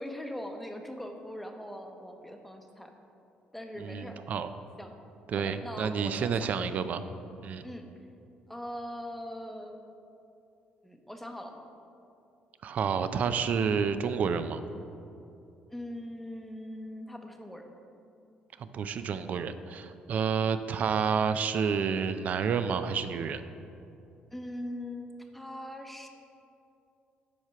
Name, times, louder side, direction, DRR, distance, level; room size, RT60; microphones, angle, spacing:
voice 1, 0.0-2.9 3.5-4.2 4.8-4.9 5.3-6.7 7.6-7.9 8.5-9.8 10.8-11.6 15.7-17.7 24.3-26.1, left 1 dB, 5° left, 4 dB, 0.8 m, -41 dB
voice 2, 3.8-4.5 5.3-7.0 7.4-7.6 12.6-14.6 18.6-23.4, right 6 dB, 55° right, 11 dB, 0.4 m, -29 dB
7.7 x 5.0 x 5.6 m, 2.7 s
cardioid pair, 100°, 3 cm